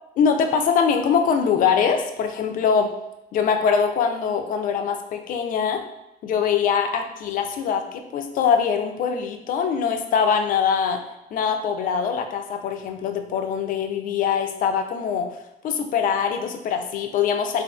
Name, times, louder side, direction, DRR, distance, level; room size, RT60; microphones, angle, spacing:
voice 1, 0.2-2.9 3.3-5.8 6.2-11.0 11.3-15.3 15.6-17.6, left 6 dB, 55° left, 5 dB, 0.4 m, -23 dB
2.5 x 2.4 x 2.3 m, 0.88 s
cardioid pair, 110°, 17 cm